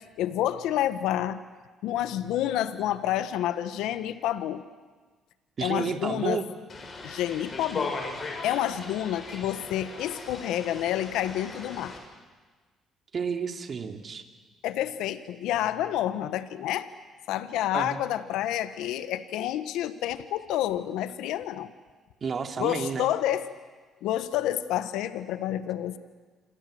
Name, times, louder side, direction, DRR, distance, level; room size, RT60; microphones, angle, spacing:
voice 1, 0.2-1.4 1.8-4.6 5.6-6.4 7.0-8.0 8.4-12.0 14.6-16.9 17.3-21.7 22.6-23.5 24.0-26.0, left 12 dB, 85° left, 12 dB, 1.3 m, -29 dB
voice 2, 5.6-6.5 13.1-14.2 17.7-18.0 22.2-23.1, right 6 dB, 45° right, 5 dB, 2.7 m, -31 dB
sound 1, 6.7-12.0, left 3 dB, 40° left, 7.1 m, -38 dB
28.0 x 26.0 x 7.9 m, 1.4 s
cardioid pair, 90°, 0 cm